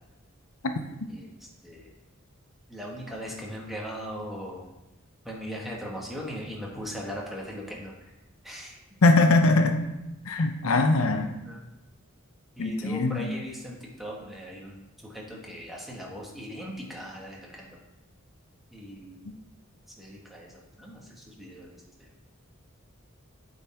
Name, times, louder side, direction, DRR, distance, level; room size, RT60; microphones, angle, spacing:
voice 1, 1.1-1.9 2.7-4.7 5.2-8.1 8.4-8.8 11.4-11.6 12.6-17.8 18.7-19.3 20.0-22.1, equal, ahead, -3 dB, 1.3 m, -39 dB
voice 2, 9.0-9.8 10.2-11.3 12.6-13.3, left 2 dB, 90° left, 6 dB, 0.6 m, -21 dB
8.9 x 3.9 x 4.2 m, 0.95 s
head